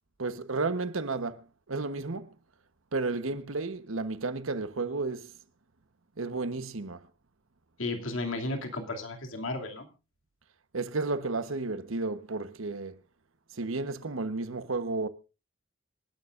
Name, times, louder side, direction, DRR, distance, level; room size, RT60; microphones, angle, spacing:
voice 1, 0.2-2.4 2.9-5.4 6.2-7.0 10.7-13.0 13.5-15.1, right 3 dB, 90° right, 1.1 m, -32 dB
voice 2, 7.8-9.9, left 2 dB, 85° left, 2.6 m, -34 dB
27.0 x 11.5 x 2.5 m
head